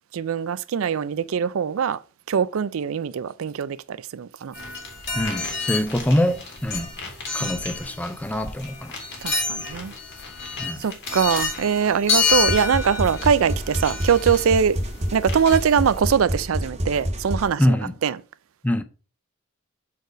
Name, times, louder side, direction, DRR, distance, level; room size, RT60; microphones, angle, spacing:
voice 1, 0.1-2.0 2.3-4.5 7.4-7.5 9.2-9.9 10.8-14.8 15.1-17.8 18.0-18.2, right 7 dB, 75° right, 0.4 m, -22 dB
sound 1, 4.5-16.0, left 5 dB, 55° left, 2.1 m, -29 dB
voice 2, 5.1-6.9 7.3-8.9 10.6-10.8 17.6-17.9 18.6-18.8, left 1 dB, 5° left, 0.5 m, -24 dB
sound 2, 12.3-17.5, equal, 30° right, 1.1 m, -28 dB
4.7 x 4.6 x 4.9 m
head